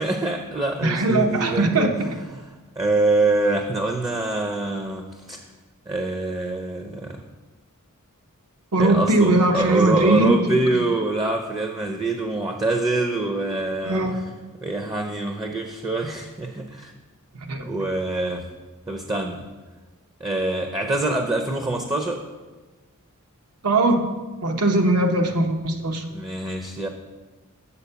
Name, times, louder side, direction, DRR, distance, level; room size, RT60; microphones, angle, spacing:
voice 1, 0.0-2.4 2.8-5.4 5.9-7.2 8.8-14.1 14.6-16.9 17.6-18.5 18.9-19.4 20.2-22.2 26.1-26.9, right 2 dB, 15° right, 3 dB, 0.5 m, -25 dB
voice 2, 0.8-1.9 8.7-10.6 13.8-14.2 17.5-17.6 23.6-24.0 24.4-26.0, right 2 dB, 80° right, 4 dB, 0.9 m, -20 dB
7.0 x 4.4 x 6.8 m, 1.3 s
head